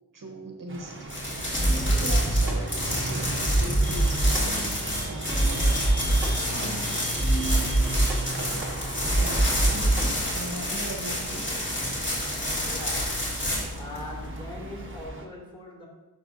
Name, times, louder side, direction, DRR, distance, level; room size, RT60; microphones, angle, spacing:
voice 1, 0.1-1.0 1.5-6.0 6.4-7.0 9.1-11.7, right 1 dB, 55° right, 0 dB, 1.1 m, -39 dB
sound 1, 0.7-15.3, right 2 dB, 30° right, 1.0 m, -39 dB
sound 2, 1.1-15.1, left 1 dB, 30° left, 2.4 m, -30 dB
sound 3, 1.5-10.1, right 1 dB, 5° right, 1.3 m, -25 dB
voice 2, 12.7-13.4 13.8-15.9, left 2 dB, 10° left, -3 dB, 2.3 m, -41 dB
11.0 x 5.7 x 2.7 m, 1.1 s
wide cardioid pair, 140°, 38 cm